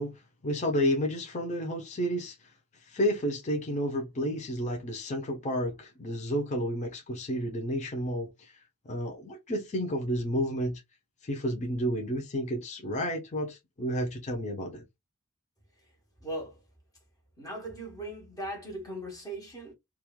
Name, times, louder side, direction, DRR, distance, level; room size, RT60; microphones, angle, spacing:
voice 1, 0.0-2.3 2.8-8.6 8.9-10.8 11.2-14.8, equal, 30° left, 0.6 m, -31 dB
voice 2, 16.2-16.6 17.4-19.7, right 1 dB, 15° left, 1.2 m, -38 dB
2.9 x 2.3 x 2.2 m
head